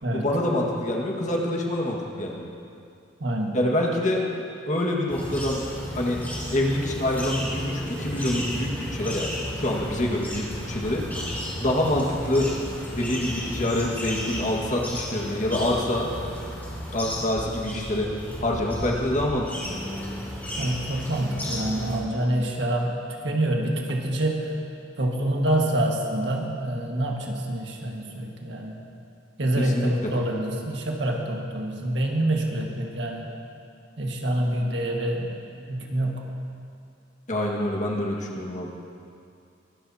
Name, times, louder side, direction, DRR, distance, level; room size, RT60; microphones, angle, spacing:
voice 1, 0.1-2.5 3.5-4.2 4.7-5.6 6.0-6.2 6.5-9.3 9.6-11.0 11.6-12.5 12.9-16.1 16.9-18.1 18.4-19.7 29.6-30.1 37.3-38.7, left 1 dB, 40° left, -1 dB, 1.8 m, -26 dB
voice 2, 3.2-3.6 20.5-23.0 23.2-24.5 25.0-28.8 29.4-33.3 34.0-35.4 35.7-36.2, right 1 dB, 70° right, 0 dB, 1.7 m, -26 dB
sound 1, 5.1-22.0, equal, 10° left, 3.0 m, -34 dB
23.0 x 12.5 x 2.9 m, 2.5 s
head